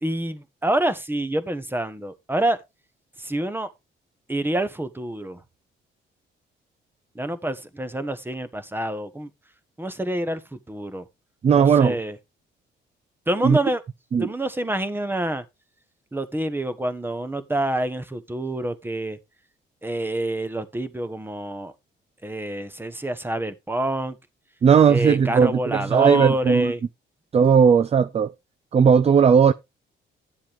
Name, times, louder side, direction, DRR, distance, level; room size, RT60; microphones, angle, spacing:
voice 1, 0.0-2.6 3.2-3.7 4.3-5.4 7.1-9.3 9.8-11.0 11.5-12.1 13.3-13.8 14.2-15.4 16.1-19.2 19.8-21.7 22.2-24.2 24.9-26.8, right 1 dB, 10° right, 1.2 m, -27 dB
voice 2, 11.4-12.0 13.4-13.6 14.1-14.3 24.6-26.7 27.3-28.3 28.7-29.5, right 7 dB, 30° right, 0.4 m, -17 dB
10.5 x 7.5 x 3.6 m
cardioid pair, 90°, 20 cm